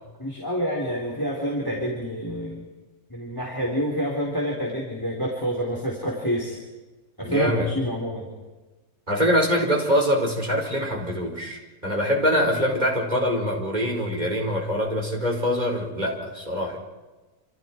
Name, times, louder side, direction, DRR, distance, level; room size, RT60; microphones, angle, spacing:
voice 1, 0.2-2.7 3.1-6.6 7.2-8.3, equal, 15° left, -2 dB, 3.9 m, -28 dB
voice 2, 7.2-7.7 9.1-16.8, equal, 30° right, 0 dB, 5.0 m, -24 dB
29.0 x 28.0 x 4.6 m, 1.2 s
omnidirectional pair, 1.6 m